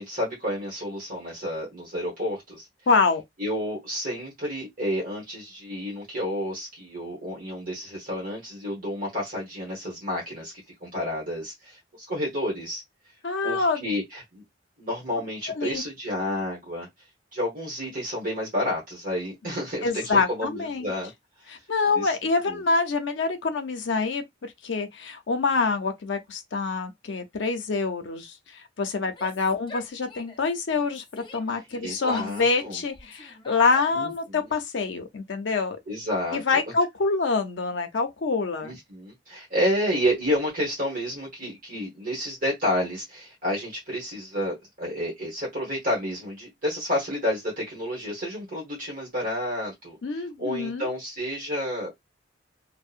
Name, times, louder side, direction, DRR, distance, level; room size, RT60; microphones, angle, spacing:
voice 1, 0.0-2.7 3.4-10.5 10.8-12.8 13.4-14.4 14.8-16.9 17.3-21.1 21.4-21.5 21.9-22.2 22.5-22.6 31.8-32.8 33.9-34.1 35.9-36.6 38.6-50.0 50.4-51.9, equal, 50° right, 1.1 m, -30 dB
voice 2, 2.9-3.2 13.2-13.9 15.5-15.8 19.8-20.9 21.5-35.8 36.3-38.8 50.0-50.9, left 4 dB, 85° left, 0.6 m, -26 dB
Yell, 29.1-30.5 30.8-34.3, left 3 dB, 25° left, 0.5 m, -43 dB
2.7 x 2.1 x 2.4 m
head